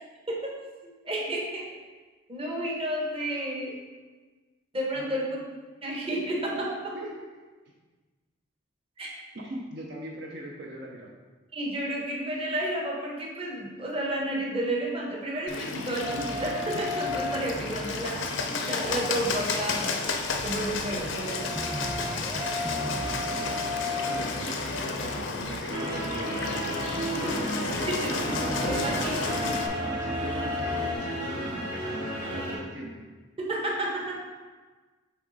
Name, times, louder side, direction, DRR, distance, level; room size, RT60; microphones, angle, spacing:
voice 1, 0.8-1.7 2.3-3.8 4.7-5.4 5.8-7.0 9.0-9.1 11.5-21.6 27.1-29.1 33.4-34.2, right 1 dB, 30° right, -2 dB, 1.0 m, -32 dB
voice 2, 4.9-5.3 6.9-7.2 9.3-11.1 23.3-23.5 24.0-26.5 27.8-29.5 30.0-32.9, right 1 dB, 55° right, -3 dB, 0.8 m, -41 dB
Bird, 15.5-29.7, left 4 dB, 70° left, 0.6 m, -32 dB
sound 1, 16.0-18.5 18.8-20.2 20.6-31.0, left 1 dB, 10° right, 0.3 m, -36 dB
sound 2, 25.7-32.6, equal, 75° right, 1.9 m, -33 dB
8.0 x 3.4 x 4.0 m, 1.3 s
head